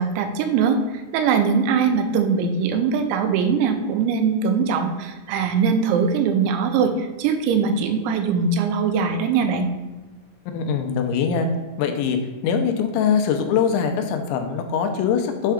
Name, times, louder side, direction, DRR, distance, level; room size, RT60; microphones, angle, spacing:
voice 1, 0.0-9.7, right 6 dB, 85° right, 6 dB, 3.0 m, -21 dB
voice 2, 10.5-11.5 11.8-12.2 12.4-15.5, left 7 dB, 85° left, 5 dB, 3.0 m, -22 dB
7.4 x 3.4 x 5.0 m, 1.2 s
omnidirectional pair, 5.3 m